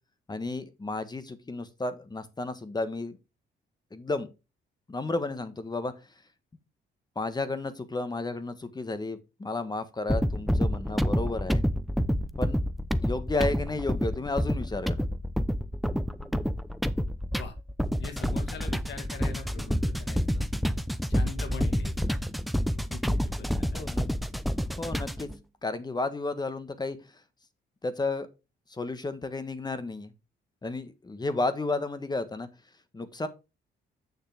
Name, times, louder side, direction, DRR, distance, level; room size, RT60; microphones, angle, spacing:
voice 1, 0.3-3.2 3.9-4.3 4.9-5.9 7.1-11.6 12.4-12.6 13.0-15.0 23.7-24.1 24.8-25.3 25.6-27.0 27.8-28.3 28.7-30.1 30.6-32.5 32.9-33.3, left 2 dB, 20° left, 12 dB, 1.4 m, -32 dB
sound 1, 10.1-25.3, equal, ahead, 0.7 m, -28 dB
voice 2, 18.0-20.5 21.1-22.1 22.9-23.8, left 5 dB, 65° left, 7 dB, 2.1 m, -42 dB
8.2 x 6.7 x 3.5 m, 0.27 s
cardioid pair, 90°, 20 cm